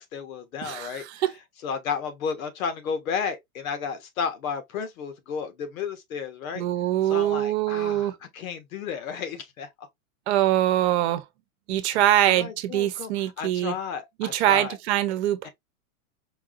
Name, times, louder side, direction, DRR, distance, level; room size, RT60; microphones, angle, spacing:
voice 1, 0.0-1.0 1.6-6.6 7.1-9.9 12.3-13.1 13.4-14.8 15.4-15.5, left 6 dB, 75° left, 1.3 m, -32 dB
voice 2, 0.6-1.3 6.5-8.2 10.3-11.2 11.7-13.7 14.2-15.5, right 13 dB, 50° right, 0.9 m, -23 dB
4.6 x 2.8 x 2.5 m
supercardioid pair, 150°, 42 cm